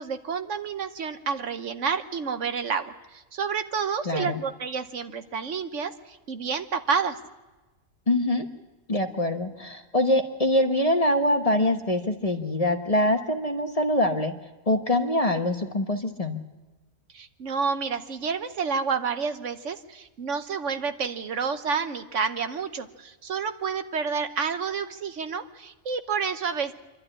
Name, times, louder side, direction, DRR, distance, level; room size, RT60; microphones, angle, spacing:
voice 1, 0.0-7.2 17.1-26.7, right 5 dB, 65° right, 9 dB, 1.2 m, -29 dB
voice 2, 4.0-4.4 8.1-8.5 8.9-14.3 14.7-16.4, left 1 dB, 30° left, 5 dB, 1.1 m, -24 dB
26.5 x 12.5 x 9.9 m, 1.2 s
omnidirectional pair, 1.4 m